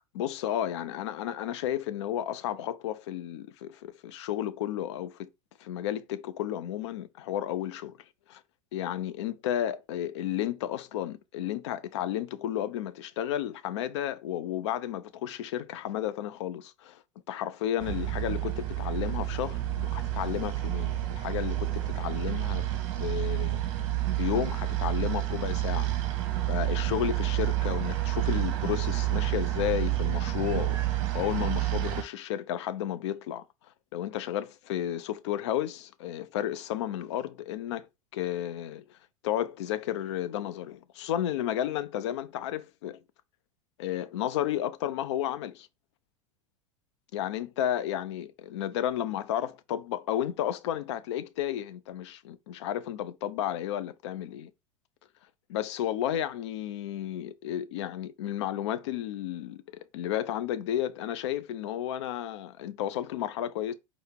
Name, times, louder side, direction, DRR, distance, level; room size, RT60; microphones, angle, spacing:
voice 1, 0.1-5.3 5.6-7.9 8.3-8.4 8.7-17.0 17.3-22.7 23.0-23.9 24.2-26.2 26.5-33.4 33.9-39.0 39.2-43.0 43.8-45.7 47.1-54.5 55.5-59.6 59.9-63.7, left 11 dB, 55° left, 0.5 m, -32 dB
sound 1, 17.8-32.0, right 14 dB, 50° right, 0.8 m, -29 dB
4.8 x 2.1 x 4.4 m
figure-of-eight pair, 85°, 17 cm